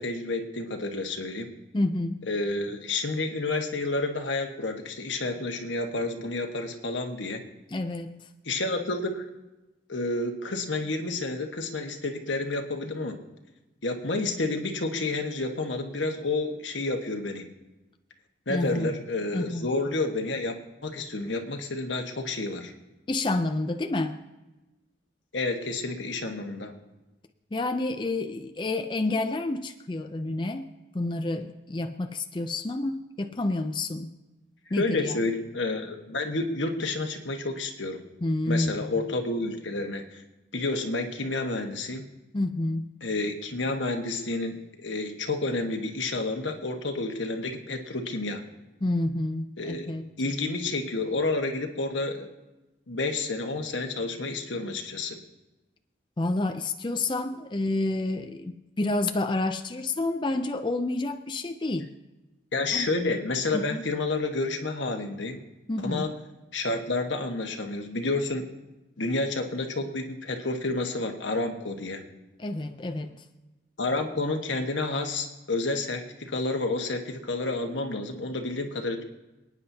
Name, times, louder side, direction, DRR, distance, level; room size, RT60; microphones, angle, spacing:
voice 1, 0.0-1.5 2.3-7.4 8.4-9.3 9.9-13.2 13.8-17.4 18.5-20.6 20.8-22.7 25.3-26.7 34.8-38.0 38.5-40.2 40.5-42.0 43.0-48.4 49.6-49.9 50.2-52.3 52.9-55.2 62.5-65.4 65.8-66.1 66.5-68.4 69.0-72.0 73.8-79.0, left 2 dB, 85° left, 4 dB, 1.4 m, -30 dB
voice 2, 1.7-2.2 7.7-8.2 18.5-18.9 19.3-19.7 23.1-24.2 27.5-34.1 34.7-35.2 38.2-38.9 42.3-42.9 48.8-50.1 56.2-61.9 62.7-62.9 63.5-63.8 65.7-66.1 72.4-73.2, left 2 dB, 25° left, 6 dB, 0.5 m, -29 dB
28.0 x 9.8 x 2.8 m, 1.1 s
head